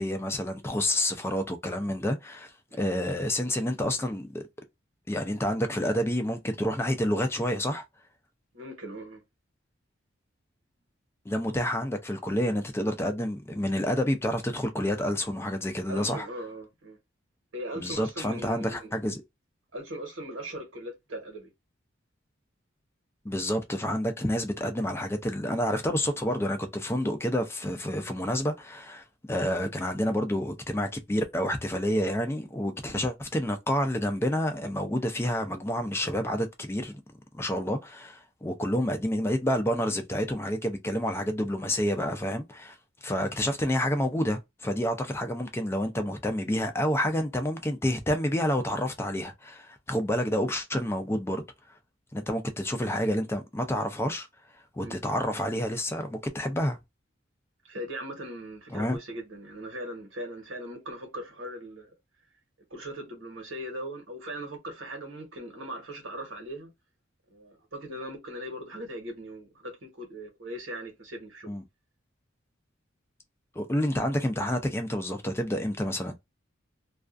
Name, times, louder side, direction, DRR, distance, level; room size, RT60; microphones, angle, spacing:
voice 1, 0.0-4.4 5.1-7.8 11.3-16.3 17.8-19.2 23.2-37.0 37.3-42.8 43.0-51.4 52.1-54.3 54.8-56.8 58.7-59.0 71.5-71.6 73.6-76.1, equal, 15° left, 0.4 m, -29 dB
voice 2, 8.5-9.2 15.9-17.0 17.5-19.0 19.7-21.5 27.8-27.9 40.8-41.0 54.8-55.0 57.6-61.9 62.7-66.7 67.3-71.6, right 1 dB, 85° right, 1.1 m, -39 dB
2.4 x 2.3 x 2.4 m
head